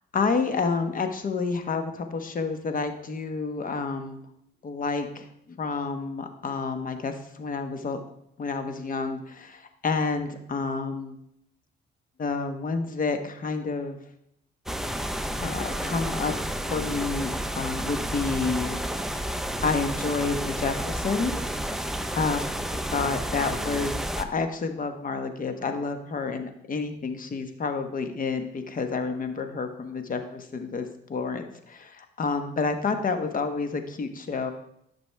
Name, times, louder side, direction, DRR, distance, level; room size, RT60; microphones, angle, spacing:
voice 1, 0.1-4.2 4.6-8.0 8.4-11.1 12.2-14.0 15.4-16.3 16.7-18.7 19.2-21.3 22.1-34.5, left 4 dB, 45° left, 7 dB, 1.1 m, -29 dB
sound 1, 14.7-24.2, equal, ahead, 0.6 m, -31 dB
11.5 x 6.0 x 3.4 m, 0.76 s
cardioid pair, 90°, 20 cm